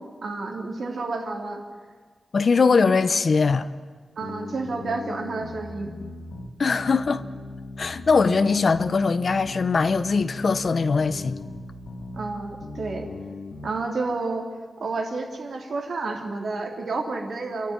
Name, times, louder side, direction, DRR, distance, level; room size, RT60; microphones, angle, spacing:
voice 1, 0.2-1.6 4.2-5.9 12.1-13.1 13.6-14.5 14.8-17.7, right 3 dB, 70° right, 3.2 m, -30 dB
voice 2, 2.3-3.7 6.6-7.2 7.8-11.4, left 4 dB, 50° left, 0.8 m, -21 dB
sound 1, 4.2-13.7, left 3 dB, 75° left, 2.0 m, -38 dB
29.5 x 12.0 x 9.8 m
wide cardioid pair, 165°, 0 cm